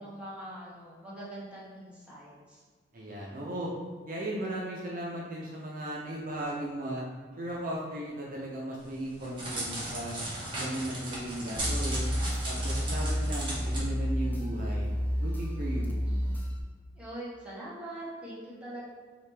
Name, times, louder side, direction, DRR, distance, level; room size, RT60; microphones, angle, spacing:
voice 1, 0.0-2.6 16.0-16.4 16.9-18.8, right 1 dB, 5° right, -8 dB, 1.2 m, -43 dB
voice 2, 2.9-3.7 4.1-7.0 7.4-10.2 10.5-12.1 12.4-14.9 15.2-15.9, right 1 dB, 50° right, -4 dB, 0.7 m, -36 dB
Crackle, 8.8-13.8, right 1 dB, 30° right, 1.3 m, -36 dB
sound 1, 11.6-16.6, equal, 10° left, 0.5 m, -30 dB
4.9 x 2.8 x 3.4 m, 1.5 s
head